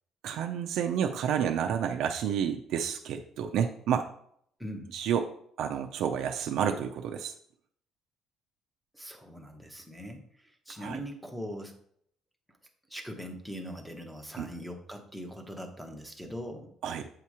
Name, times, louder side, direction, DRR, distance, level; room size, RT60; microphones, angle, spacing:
voice 1, 0.2-4.1 4.9-5.3 5.6-7.3 10.8-11.0 14.4-14.5 16.8-17.1, right 8 dB, 65° right, 4 dB, 0.4 m, -30 dB
voice 2, 4.6-4.9 8.9-11.7 12.9-16.7, equal, ahead, 2 dB, 0.7 m, -41 dB
7.9 x 2.9 x 4.8 m, 0.66 s
cardioid pair, 170°, 0 cm